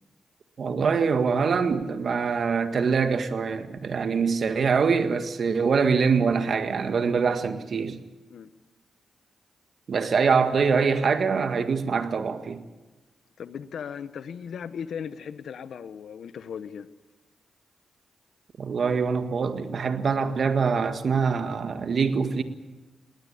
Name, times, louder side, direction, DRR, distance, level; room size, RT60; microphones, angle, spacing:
voice 1, 0.6-8.0 9.9-12.6 18.6-22.4, right 5 dB, 65° right, 1.8 m, -24 dB
voice 2, 13.4-16.9, left 7 dB, 75° left, 1.0 m, -37 dB
20.0 x 19.0 x 8.6 m
supercardioid pair, 50°, 0 cm